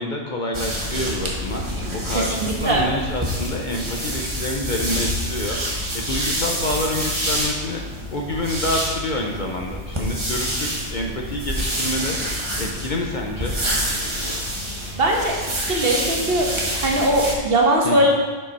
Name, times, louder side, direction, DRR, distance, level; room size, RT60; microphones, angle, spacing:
voice 1, 0.0-1.6 1.9-5.6 5.9-7.8 8.1-12.2 12.6-13.6 17.8-18.1, left 1 dB, 45° left, 1 dB, 0.8 m, -27 dB
sound 1, 0.5-17.3, equal, 25° right, 1.2 m, -27 dB
voice 2, 2.1-2.9 14.9-15.3 15.7-16.5 16.7-18.1, right 1 dB, 50° right, -1 dB, 1.4 m, -20 dB
7.0 x 5.6 x 5.4 m, 1.3 s
omnidirectional pair, 1.2 m